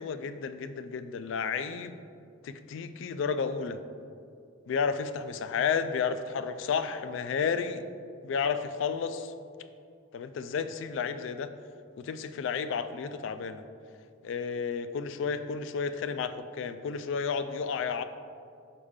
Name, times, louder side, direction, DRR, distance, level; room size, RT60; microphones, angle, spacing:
voice 1, 0.0-1.9 2.4-3.8 4.7-7.8 8.2-9.3 10.1-11.5 12.0-13.6 14.2-18.0, left 6 dB, 70° left, 11 dB, 0.3 m, -32 dB
5.2 x 5.0 x 3.6 m, 2.3 s
head